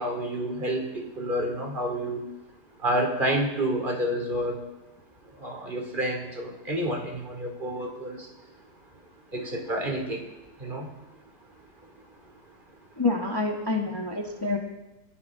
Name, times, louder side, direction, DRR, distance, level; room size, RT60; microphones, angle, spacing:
voice 1, 0.0-2.2 2.8-4.5 5.4-8.2 9.3-10.2 10.6-10.9, right 1 dB, 30° right, 2 dB, 3.1 m, -29 dB
voice 2, 13.0-14.6, left 3 dB, 15° left, 1 dB, 1.3 m, -27 dB
24.5 x 15.0 x 3.8 m, 1.0 s
omnidirectional pair, 1.8 m